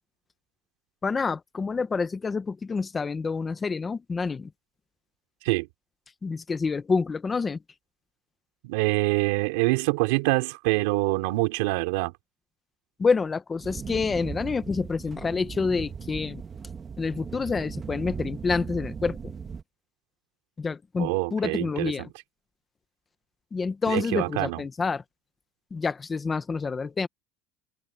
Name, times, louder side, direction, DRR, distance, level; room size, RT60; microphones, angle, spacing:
voice 1, 1.0-4.5 6.2-7.6 13.0-16.4 17.0-19.3 20.6-22.1 23.5-25.0 25.7-27.1, left 4 dB, 15° left, 0.8 m, -28 dB
voice 2, 8.6-12.1 21.0-22.1 23.9-24.6, right 23 dB, 80° right, 3.4 m, -25 dB
sound 1, 13.6-19.6, right 6 dB, 20° right, 1.9 m, -37 dB
open air
cardioid pair, 180°, 0 cm